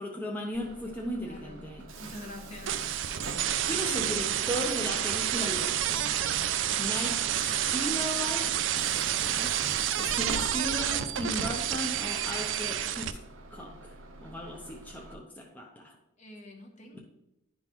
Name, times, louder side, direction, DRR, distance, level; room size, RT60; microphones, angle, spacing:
voice 1, 0.0-1.9 3.7-6.1 6.8-9.6 10.0-13.2 13.5-13.9 14.2-15.9 16.9-17.0, equal, 10° left, -1 dB, 0.6 m, -36 dB
Bus / Alarm, 0.5-15.1, right 5 dB, 80° right, 0.8 m, -42 dB
voice 2, 1.2-1.6 2.0-2.8 3.5-4.2 16.2-17.0, left 1 dB, 35° left, 3 dB, 0.9 m, -46 dB
sound 1, 2.7-13.1, right 10 dB, 65° right, 0.4 m, -29 dB
11.0 x 3.8 x 3.0 m, 0.89 s
head